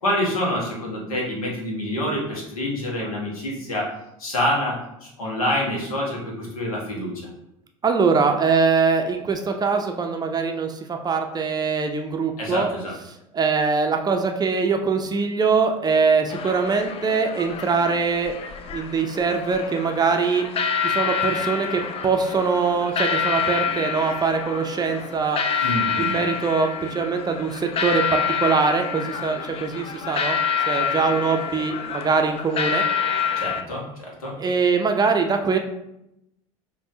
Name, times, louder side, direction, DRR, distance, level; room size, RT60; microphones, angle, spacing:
voice 1, 0.0-3.9 4.2-7.3 12.4-12.9 25.6-26.2 33.3-34.4, left 1 dB, 80° left, -3 dB, 1.2 m, -27 dB
voice 2, 7.8-12.7 13.3-18.4 18.7-20.5 20.8-25.4 26.0-32.9 34.4-35.6, right 5 dB, 20° right, 4 dB, 0.5 m, -22 dB
sound 1, 16.3-33.6, left 6 dB, 35° left, 0.4 m, -27 dB
5.2 x 2.6 x 2.7 m, 0.85 s
figure-of-eight pair, 70°, 18 cm